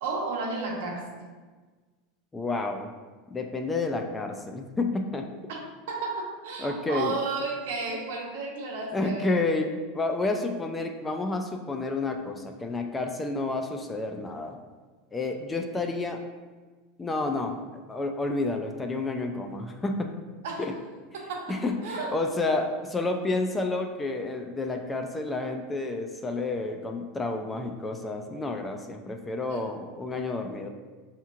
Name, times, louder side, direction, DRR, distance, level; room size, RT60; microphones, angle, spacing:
voice 1, 0.0-1.2 5.5-9.4 20.4-20.7 21.1-22.2 29.5-29.6, right 3 dB, 85° right, 0 dB, 0.8 m, -33 dB
voice 2, 2.3-2.9 3.3-5.3 6.6-7.1 8.9-14.6 15.1-16.2 17.0-20.1 20.6-20.7 21.5-30.7, left 2 dB, 15° left, 4 dB, 0.3 m, -30 dB
5.4 x 2.9 x 2.4 m, 1.3 s
supercardioid pair, 140°, 0 cm